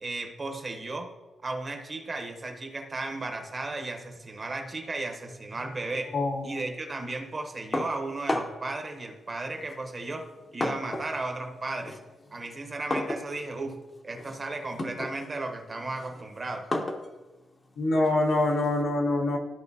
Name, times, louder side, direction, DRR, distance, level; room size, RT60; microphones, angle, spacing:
voice 1, 0.0-1.1 1.4-6.1 6.4-12.0 12.3-13.8 14.0-16.7, right 2 dB, 30° right, 4 dB, 0.9 m, -35 dB
voice 2, 6.1-6.6 17.8-19.4, left 2 dB, 85° left, -2 dB, 1.5 m, -25 dB
sound 1, 7.7-8.7 9.6-11.2 11.5-18.8, left 1 dB, 25° left, 0.8 m, -35 dB
13.5 x 4.9 x 2.7 m, 1.2 s
wide cardioid pair, 145°, 0 cm